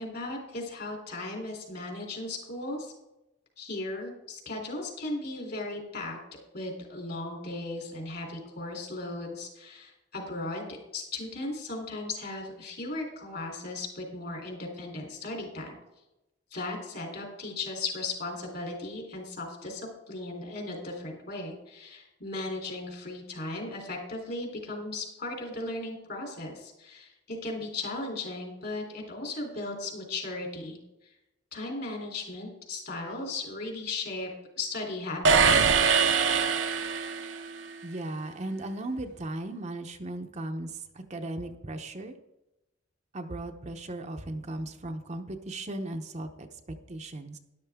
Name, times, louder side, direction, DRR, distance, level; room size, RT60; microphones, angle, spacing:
voice 1, 0.0-2.9 3.6-6.2 6.5-15.8 16.5-31.1 31.5-34.3 34.6-35.6, left 2 dB, 55° left, 2 dB, 3.4 m, -36 dB
sound 1, 35.2-37.5, right 5 dB, 75° right, 0.9 m, -23 dB
voice 2, 37.8-42.2 43.1-47.4, right 1 dB, 35° right, 5 dB, 0.8 m, -37 dB
12.5 x 11.0 x 3.6 m, 0.95 s
head